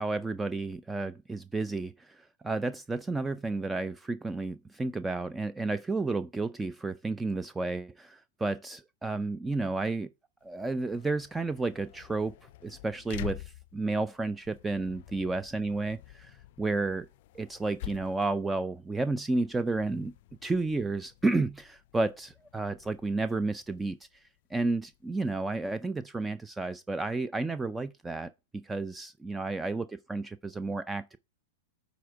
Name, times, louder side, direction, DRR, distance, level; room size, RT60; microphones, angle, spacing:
voice 1, 0.0-10.1 10.4-12.3 12.6-17.1 17.3-20.1 20.4-24.0 24.5-31.2, right 3 dB, 10° right, 0.4 m, -32 dB
sound 1, 10.4-25.8, left 15 dB, 60° left, 0.4 m, -48 dB
9.2 x 4.0 x 4.4 m
hypercardioid pair, 110°, 0 cm